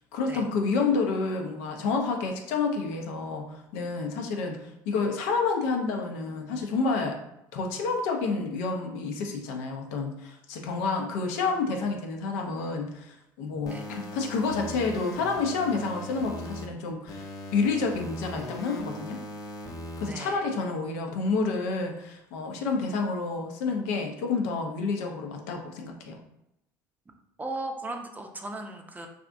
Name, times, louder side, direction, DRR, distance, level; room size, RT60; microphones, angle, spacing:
voice 1, 0.1-7.2 7.5-19.2 20.0-26.2, left 4 dB, 75° left, 2 dB, 0.5 m, -29 dB
sound 1, 13.7-16.7 17.1-20.1, left 1 dB, 40° left, 0.8 m, -39 dB
voice 2, 20.1-20.5 27.4-29.1, right 2 dB, 15° right, 4 dB, 0.5 m, -37 dB
3.4 x 2.4 x 2.5 m, 0.85 s
hypercardioid pair, 75°, 10 cm